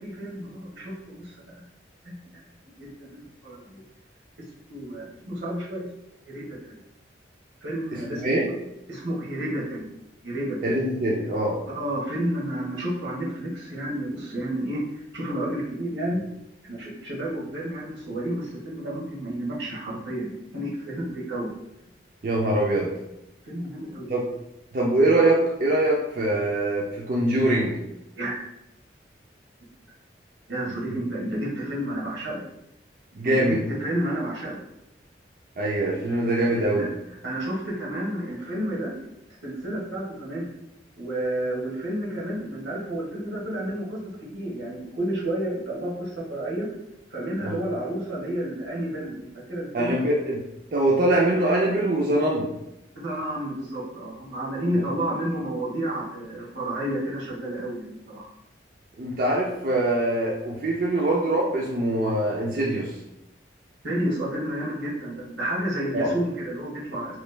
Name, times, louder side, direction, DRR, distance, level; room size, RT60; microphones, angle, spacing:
voice 1, 0.0-1.6 2.0-2.2 2.8-3.8 4.7-5.9 6.3-6.7 7.6-8.3 8.9-9.9 10.2-10.7 11.7-16.2 16.7-20.3 20.5-21.5 23.4-24.0 28.2-28.3 30.5-32.4 33.2-34.6 36.4-36.9 37.2-38.9 39.4-40.5 41.0-44.0 44.3-46.7 47.1-50.0 52.9-58.3 63.8-67.2, right 1 dB, 90° right, -5 dB, 1.2 m, -30 dB
voice 2, 7.9-8.5 10.6-11.6 22.2-22.9 24.1-24.3 24.7-27.8 30.9-31.0 33.1-33.6 35.6-36.9 47.4-47.6 49.7-50.4 50.7-52.5 59.0-63.0 65.9-66.1, right 1 dB, 50° right, -3 dB, 0.4 m, -23 dB
3.1 x 2.3 x 3.2 m, 0.86 s
head